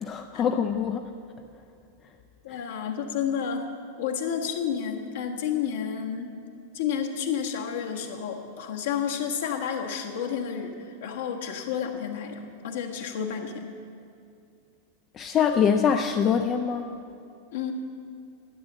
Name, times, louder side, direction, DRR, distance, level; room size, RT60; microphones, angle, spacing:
voice 1, 0.0-1.1 2.5-2.6 15.1-16.9, left 7 dB, 30° left, 6 dB, 0.5 m, -24 dB
voice 2, 2.4-3.7 4.0-6.3 6.7-13.7 17.5-17.7, left 7 dB, 60° left, 2 dB, 1.3 m, -30 dB
12.5 x 8.8 x 7.3 m, 2.5 s
figure-of-eight pair, 90°, 0 cm